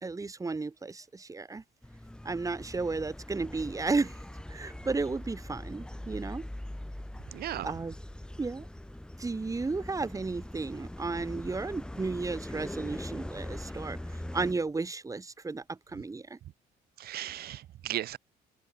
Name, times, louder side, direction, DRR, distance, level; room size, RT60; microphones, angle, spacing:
voice 1, 0.0-1.6 2.3-4.2 4.5-6.5 7.6-8.0 8.4-8.7 9.2-14.0 14.3-16.4, right 3 dB, 20° right, 3.5 m, -33 dB
sound 1, 1.8-14.5, left 1 dB, 5° left, 4.2 m, -42 dB
voice 2, 7.3-7.7 17.0-18.2, right 13 dB, 65° right, 3.4 m, -36 dB
cardioid pair, 110°, 17 cm